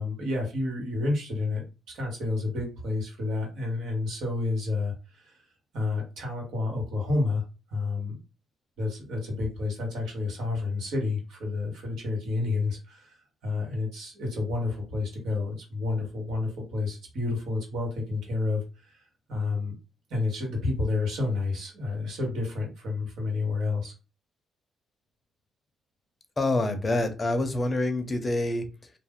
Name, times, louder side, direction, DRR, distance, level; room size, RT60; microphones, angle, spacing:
voice 1, 0.0-1.6 1.9-5.4 5.7-7.4 7.7-8.2 8.8-13.1 13.4-19.0 19.3-19.8 20.1-23.9, left 3 dB, 75° right, 1.3 m, -30 dB
voice 2, 26.4-28.9, left 2 dB, 25° left, 0.6 m, -27 dB
2.6 x 2.1 x 3.5 m
cardioid pair, 90°, 0 cm